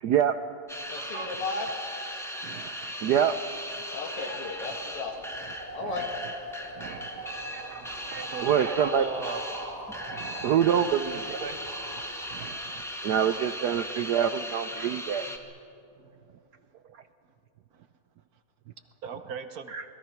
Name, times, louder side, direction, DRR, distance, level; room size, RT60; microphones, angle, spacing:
voice 1, 0.0-0.4 1.0-1.3 2.4-3.3 6.8-7.1 7.5-7.8 8.1-9.1 10.1-11.4 12.3-12.6 13.0-15.2 19.7-19.8, right 9 dB, 75° right, 10 dB, 0.9 m, -27 dB
sound 1, 0.7-15.4, equal, ahead, 1.3 m, -38 dB
voice 2, 0.9-1.7 3.9-5.2 5.7-6.1, left 3 dB, 90° left, 3 dB, 3.1 m, -35 dB
sound 2, 3.8-13.5, right 1 dB, 15° right, 2.5 m, -41 dB
voice 3, 8.3-9.4 10.7-10.8 11.1-11.6 16.0-16.1 19.0-19.7, right 6 dB, 50° right, 9 dB, 1.3 m, -37 dB
27.0 x 21.0 x 5.9 m, 2.7 s
omnidirectional pair, 2.4 m